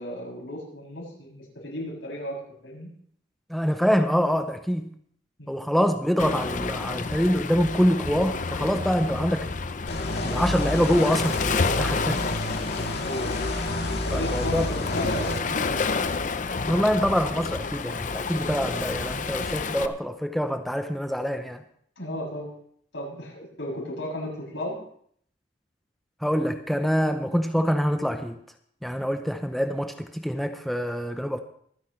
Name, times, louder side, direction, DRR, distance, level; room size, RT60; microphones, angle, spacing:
voice 1, 0.0-2.9 5.4-5.6 13.0-13.5 14.0-16.1 22.0-22.5 22.9-24.8, left 1 dB, 80° left, -3 dB, 7.1 m, -35 dB
voice 2, 3.5-4.9 5.5-9.5 10.2-12.2 14.1-14.7 16.6-21.6 26.2-28.4 28.8-31.4, equal, ahead, 6 dB, 0.6 m, -25 dB
Waves surf, 6.2-19.9, left 4 dB, 40° left, 0.6 m, -30 dB
sound 1, 9.9-15.4, left 1 dB, 60° left, 1.8 m, -30 dB
25.0 x 9.9 x 3.2 m, 0.63 s
head